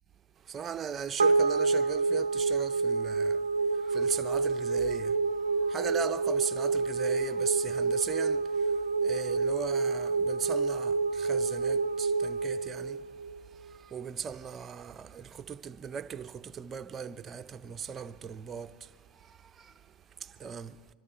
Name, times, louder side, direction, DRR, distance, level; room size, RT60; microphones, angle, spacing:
voice 1, 0.4-3.4 3.7-5.2 5.5-13.0 13.5-19.8 20.2-20.8, right 7 dB, 30° right, 0.7 m, -38 dB
sound 1, 1.2-13.7, right 4 dB, 90° right, 0.4 m, -28 dB
25.0 x 13.0 x 4.5 m
hypercardioid pair, 90°, 0 cm